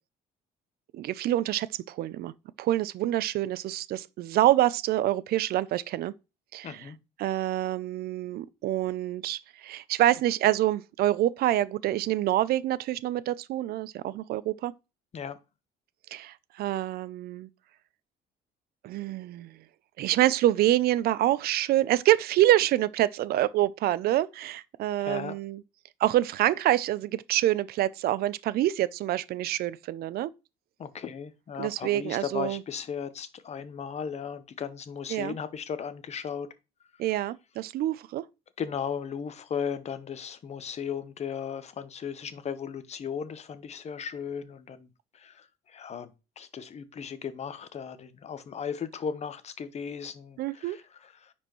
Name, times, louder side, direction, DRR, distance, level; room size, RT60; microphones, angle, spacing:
voice 1, 0.9-2.3 2.6-6.1 6.5-6.9 7.2-14.7 16.1-17.5 18.8-19.5 20.0-25.6 26.0-30.3 31.6-32.6 35.1-35.3 37.0-38.2 50.4-50.8, right 14 dB, 65° right, 0.4 m, -26 dB
voice 2, 6.6-7.0 15.1-15.4 25.0-25.3 30.8-36.5 38.6-44.9 45.1-51.3, left 7 dB, 40° left, 0.9 m, -36 dB
9.9 x 4.3 x 3.0 m
cardioid pair, 110°, 17 cm